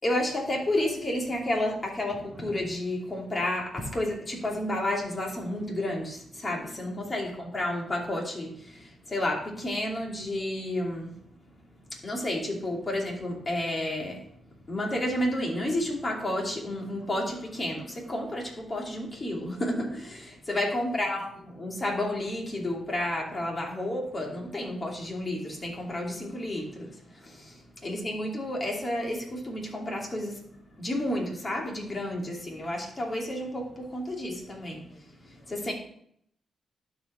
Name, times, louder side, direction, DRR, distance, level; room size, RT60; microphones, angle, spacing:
voice 1, 0.0-11.1 11.9-14.2 14.7-35.7, left 1 dB, 35° left, -1 dB, 2.9 m, -31 dB
12.0 x 5.1 x 3.7 m, 0.67 s
cardioid pair, 70°, 0 cm